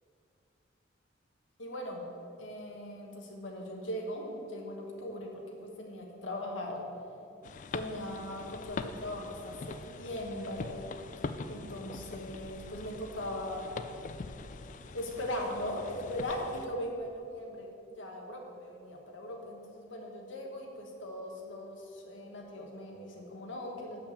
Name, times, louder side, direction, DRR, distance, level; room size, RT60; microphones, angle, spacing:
voice 1, 1.6-2.0 2.4-6.9 7.7-10.8 11.5-13.7 14.9-24.0, left 1 dB, 80° left, 0 dB, 1.3 m, -39 dB
sound 1, 7.4-16.7, left 4 dB, 40° left, 0.3 m, -43 dB
6.8 x 5.7 x 7.2 m, 2.6 s
head